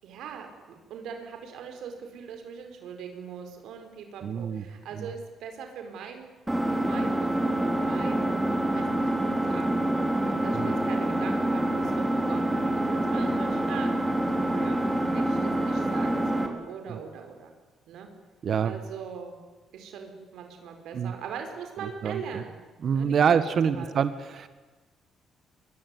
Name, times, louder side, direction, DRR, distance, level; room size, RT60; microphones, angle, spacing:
voice 1, 0.0-6.3 6.8-8.3 8.6-17.5 17.9-18.1 18.6-19.4 19.7-22.6 22.9-23.4 23.7-23.9, right 6 dB, 80° right, 5 dB, 4.7 m, -41 dB
voice 2, 4.2-4.6 5.0-5.1 10.5-10.7 16.9-17.0 18.4-18.7 20.9-21.1 22.0-22.4 22.8-24.5, right 7 dB, 55° right, 11 dB, 1.5 m, -26 dB
Engine, 6.5-16.5, right 1 dB, 10° right, 4.3 m, -26 dB
23.0 x 23.0 x 9.8 m, 1.3 s
cardioid pair, 90°, 0 cm